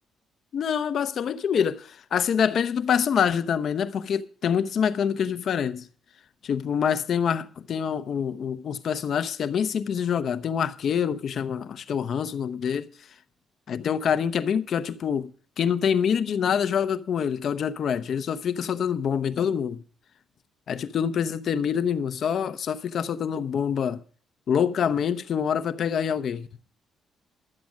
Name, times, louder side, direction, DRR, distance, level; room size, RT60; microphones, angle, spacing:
voice 1, 0.5-5.9 6.4-12.9 13.7-15.3 15.6-19.8 20.7-24.0 24.5-26.5, left 7 dB, 60° left, 0.8 m, -26 dB
12.0 x 7.7 x 7.3 m
cardioid pair, 90°, 0 cm